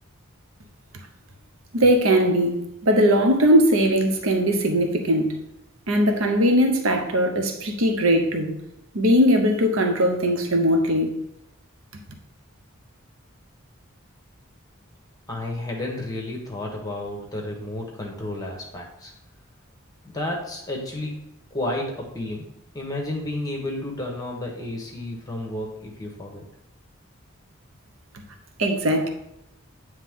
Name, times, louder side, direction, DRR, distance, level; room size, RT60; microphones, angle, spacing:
voice 1, 1.7-5.4 5.9-8.5 8.9-11.2 28.6-29.1, equal, 75° right, 0.8 m, -20 dB
voice 2, 15.3-19.1 20.0-21.1 21.5-22.5 22.7-26.4, left 1 dB, 20° left, 1.0 m, -31 dB
9.1 x 3.2 x 3.6 m
head